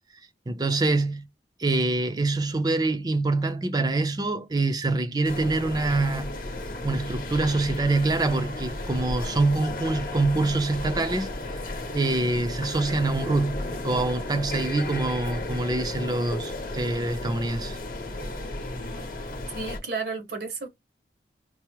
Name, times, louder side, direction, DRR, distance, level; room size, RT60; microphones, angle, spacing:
voice 1, 0.5-1.2 1.6-6.4 6.8-17.8, right 2 dB, 20° right, 0.5 m, -25 dB
sound 1, 5.2-19.8, left 2 dB, 50° left, 0.8 m, -34 dB
voice 2, 19.5-20.7, right 4 dB, 65° right, 0.9 m, -32 dB
4.6 x 2.0 x 3.0 m
head